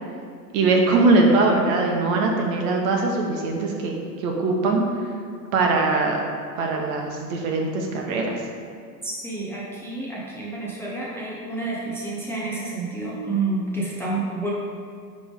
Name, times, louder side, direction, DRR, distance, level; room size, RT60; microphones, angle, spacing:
voice 1, 0.5-4.8 5.5-6.2 6.6-8.4, right 3 dB, 60° right, 1 dB, 1.2 m, -21 dB
voice 2, 9.0-14.5, right 3 dB, 5° left, -6 dB, 0.5 m, -29 dB
5.3 x 3.5 x 5.1 m, 2.2 s
hypercardioid pair, 115°, 49 cm